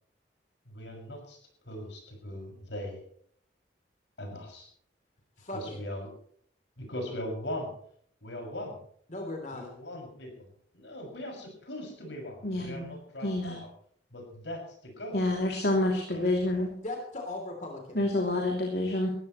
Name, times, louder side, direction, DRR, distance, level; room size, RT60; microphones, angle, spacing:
voice 1, 0.6-1.4 1.6-3.0 4.2-4.7 5.5-6.1 6.8-7.7 8.2-8.8 9.5-10.5 10.7-13.7 14.1-15.3, left 1 dB, 80° left, 2 dB, 6.5 m, -40 dB
voice 2, 5.4-5.8 9.1-9.7 16.8-18.0, left 2 dB, 40° left, 2 dB, 3.3 m, -38 dB
voice 3, 12.4-12.9 13.2-13.6 15.1-16.7 17.9-19.1, left 1 dB, 60° left, 0 dB, 2.9 m, -28 dB
20.0 x 15.0 x 3.2 m, 0.62 s
head